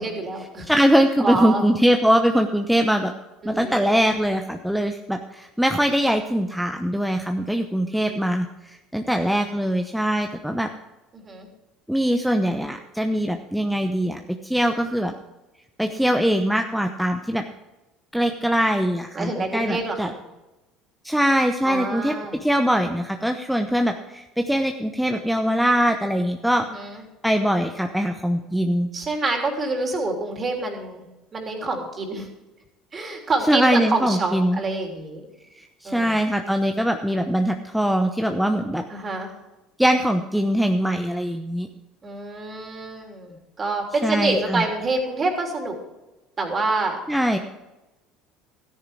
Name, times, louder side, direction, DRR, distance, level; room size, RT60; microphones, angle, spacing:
voice 1, 0.0-0.7 1.2-1.6 3.4-3.9 7.9-8.2 11.1-11.5 19.1-20.1 21.6-22.4 26.7-27.0 28.9-31.1 31.3-32.3 32.9-35.2 35.8-36.2 38.9-39.3 42.0-45.7 46.4-47.0, right 3 dB, 35° right, 2 dB, 3.4 m, -27 dB
voice 2, 0.7-3.1 3.4-10.7 11.9-15.1 15.8-17.4 18.1-20.1 21.0-22.1 22.4-26.7 27.2-28.9 33.5-34.6 35.6-38.8 39.8-41.7 44.0-44.6 47.1-47.4, equal, ahead, 5 dB, 0.9 m, -22 dB
13.5 x 10.0 x 4.9 m, 1.0 s
hypercardioid pair, 70°, 0 cm